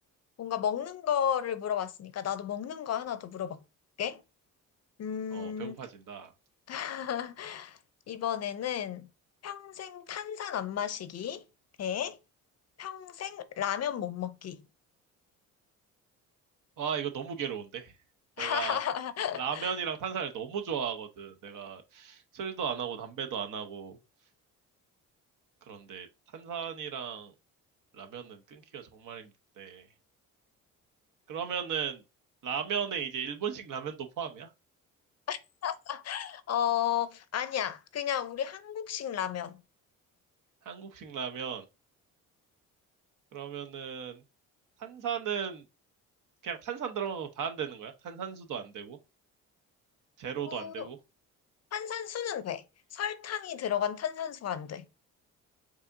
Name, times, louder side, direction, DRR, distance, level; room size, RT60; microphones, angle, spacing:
voice 1, 0.4-3.6 4.0-4.2 5.0-5.7 6.7-7.8 8.1-9.1 9.4-11.4 11.8-12.2 12.8-14.6 18.4-19.7 35.3-39.6 50.4-50.9 51.7-52.6 52.9-54.8, left 9 dB, 45° left, 0.6 m, -33 dB
voice 2, 5.3-6.3 16.8-17.9 18.4-18.8 19.4-24.0 25.6-26.1 26.3-27.3 27.9-29.3 29.6-29.9 31.3-32.0 32.4-34.5 40.6-41.6 43.3-44.2 44.8-45.6 46.4-49.0 50.2-51.0, right 7 dB, 60° right, 0.9 m, -36 dB
4.7 x 2.9 x 2.6 m
supercardioid pair, 70°, 35 cm